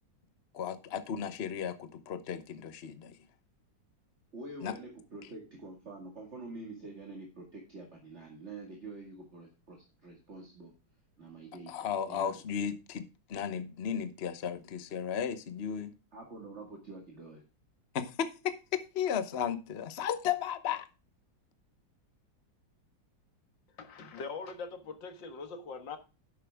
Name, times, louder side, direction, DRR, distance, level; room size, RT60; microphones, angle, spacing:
voice 1, 0.5-3.1 4.6-4.7 11.7-15.9 17.9-20.9, left 8 dB, 45° left, 1.0 m, -35 dB
voice 2, 4.3-10.7 11.2-12.4 16.1-17.4, right 2 dB, 35° right, 2.3 m, -46 dB
voice 3, 23.8-26.0, left 4 dB, 70° left, 2.2 m, -42 dB
11.0 x 8.6 x 3.5 m
omnidirectional pair, 2.1 m